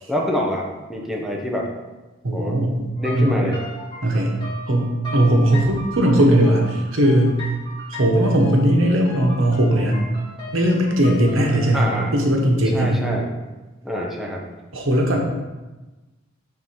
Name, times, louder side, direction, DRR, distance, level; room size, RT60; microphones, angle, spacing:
voice 1, 0.1-1.7 2.3-2.6 3.0-3.6 11.7-12.1 12.7-13.3 13.8-14.4, equal, ahead, -2 dB, 0.8 m, -26 dB
voice 2, 2.2-2.9 3.1-3.4 4.0-4.4 4.7-7.4 7.9-10.1 10.5-13.0 14.7-15.2, right 1 dB, 85° right, 1 dB, 1.1 m, -18 dB
sound 1, 3.0-12.1, left 1 dB, 25° left, 1.8 m, -37 dB
4.8 x 3.8 x 5.6 m, 1.1 s
head